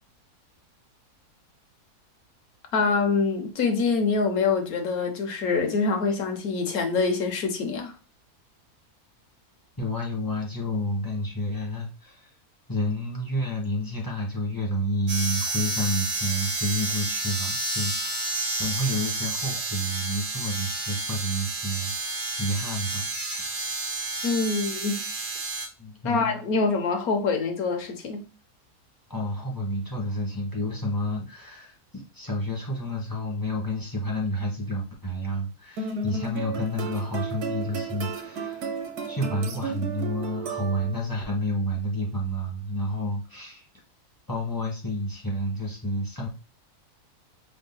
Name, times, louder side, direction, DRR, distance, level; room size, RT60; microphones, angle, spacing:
voice 1, 2.7-7.9 24.2-25.0 26.0-28.2, left 4 dB, 70° left, 1.5 m, -25 dB
voice 2, 9.8-12.3 12.7-23.6 25.8-26.4 29.1-38.6 39.1-43.6 44.3-46.3, equal, 15° left, 1.3 m, -30 dB
sound 1, 15.1-25.7, right 2 dB, 35° right, 1.1 m, -30 dB
sound 2, 35.8-41.2, right 4 dB, 80° right, 1.4 m, -33 dB
5.2 x 3.8 x 2.2 m
omnidirectional pair, 1.6 m